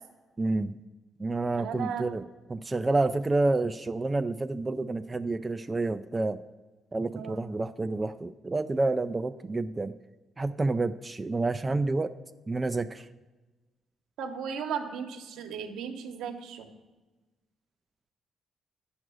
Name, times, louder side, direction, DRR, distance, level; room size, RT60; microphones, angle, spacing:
voice 1, 0.4-0.8 1.2-2.2 2.5-6.4 6.9-9.9 10.4-12.1 12.5-13.1, right 2 dB, 25° right, 9 dB, 0.3 m, -29 dB
voice 2, 1.5-2.0 7.2-7.4 14.2-16.7, right 7 dB, 85° right, 5 dB, 1.0 m, -36 dB
9.0 x 6.1 x 6.3 m, 1.2 s
cardioid pair, 90°, 0 cm